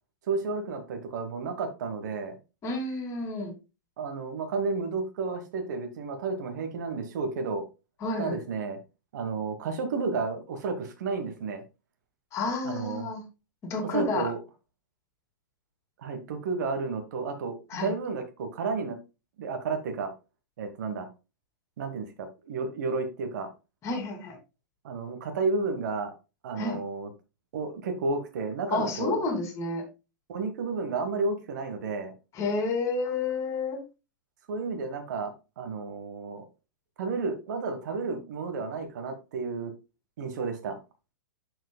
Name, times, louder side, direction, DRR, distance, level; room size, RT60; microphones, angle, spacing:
voice 1, 0.3-2.4 4.0-7.6 8.2-8.8 9.1-11.6 12.6-13.1 13.9-14.4 16.0-19.0 19.4-20.1 20.6-21.1 21.8-23.5 24.8-26.1 26.4-27.1 27.5-29.2 30.3-32.1 34.5-36.4 37.0-39.7 40.2-40.8, right 4 dB, 60° right, 6 dB, 1.3 m, -32 dB
voice 2, 2.6-3.5 8.0-8.4 12.3-13.2 13.6-14.3 17.7-17.9 23.8-24.4 26.6-26.8 28.7-29.8 32.3-33.8, left 3 dB, 30° left, 4 dB, 2.4 m, -30 dB
12.0 x 4.7 x 2.2 m, 0.28 s
figure-of-eight pair, 105°, 11 cm